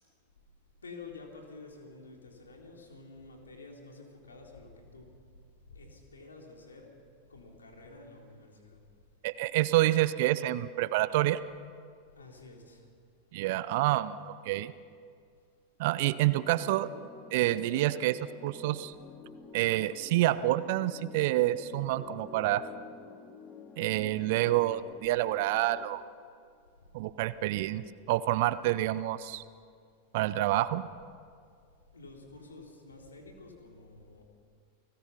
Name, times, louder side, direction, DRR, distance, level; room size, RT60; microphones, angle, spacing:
voice 1, 0.8-5.2 5.7-6.9 7.3-8.8 12.1-12.8 31.9-34.2, left 3 dB, 75° left, 1 dB, 3.8 m, -50 dB
voice 2, 9.2-11.4 13.3-14.7 15.8-16.9 17.3-18.9 19.5-22.6 23.8-26.0 26.9-29.4 30.1-30.9, right 15 dB, 50° right, 17 dB, 0.7 m, -28 dB
sound 1, 16.0-25.9, left 4 dB, 20° left, 2.2 m, -49 dB
30.0 x 19.0 x 5.7 m, 2.2 s
figure-of-eight pair, 90°, 0 cm